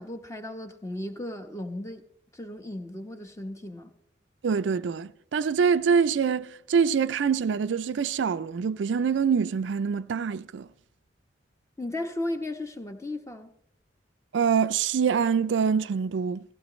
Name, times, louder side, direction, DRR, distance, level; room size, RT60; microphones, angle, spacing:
voice 1, 0.0-2.0 2.3-3.9 11.8-13.5, left 1 dB, 15° left, 1.0 m, -35 dB
voice 2, 4.4-10.7 14.3-16.4, right 6 dB, 75° right, 0.4 m, -25 dB
17.0 x 15.0 x 3.1 m
head